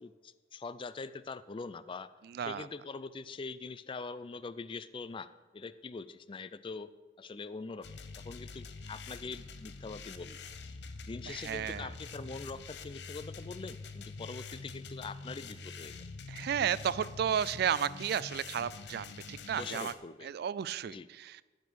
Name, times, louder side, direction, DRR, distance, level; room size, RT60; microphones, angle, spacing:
voice 1, 0.0-2.1 2.4-5.3 5.5-6.9 7.2-7.9 8.2-10.4 11.1-16.0 19.5-20.3 20.8-21.1, left 4 dB, 30° left, 0.4 m, -43 dB
voice 2, 2.3-2.7 11.3-11.9 16.3-19.9 20.2-21.4, right 8 dB, 55° right, 0.3 m, -33 dB
sound 1, 7.8-20.0, left 4 dB, 65° left, 0.7 m, -45 dB
15.0 x 5.3 x 6.2 m
head